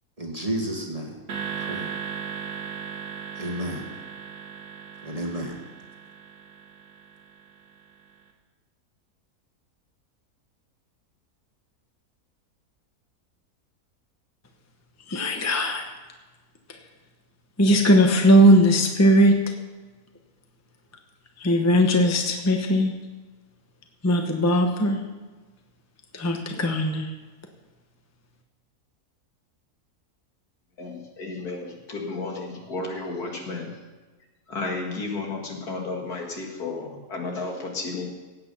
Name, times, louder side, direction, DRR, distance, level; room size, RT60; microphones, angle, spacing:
voice 1, 0.2-1.2 1.6-1.9 3.4-3.9 5.0-5.6, right 1 dB, 25° right, 0 dB, 1.8 m, -31 dB
sound 1, 1.3-7.7, right 7 dB, 75° right, 2.5 m, -37 dB
voice 2, 15.1-15.8 17.6-19.5 21.4-22.9 24.0-25.0 26.1-27.1, equal, 10° left, 3 dB, 1.0 m, -19 dB
voice 3, 30.8-33.7 34.5-38.1, left 3 dB, 75° left, 1 dB, 2.5 m, -32 dB
16.5 x 8.6 x 5.6 m, 1.3 s
omnidirectional pair, 1.6 m